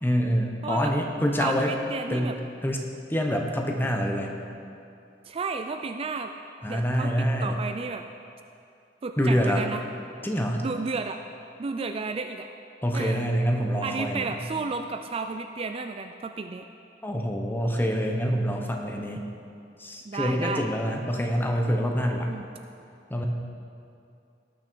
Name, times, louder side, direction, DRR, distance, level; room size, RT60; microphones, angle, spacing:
voice 1, 0.0-1.7 2.1-2.3 2.6-2.8 3.1-4.3 6.6-7.6 9.2-9.6 10.2-10.6 12.8-14.3 17.0-19.2 19.8-22.3 23.1-23.3, equal, 10° left, 2 dB, 1.0 m, -26 dB
voice 2, 0.6-0.9 1.4-2.3 5.3-6.3 6.7-8.0 9.0-9.8 10.6-11.2 11.6-12.5 12.9-13.3 13.8-16.7 20.0-20.7 22.3-22.4, right 4 dB, 30° right, 6 dB, 0.4 m, -32 dB
18.5 x 6.3 x 4.6 m, 2.6 s
head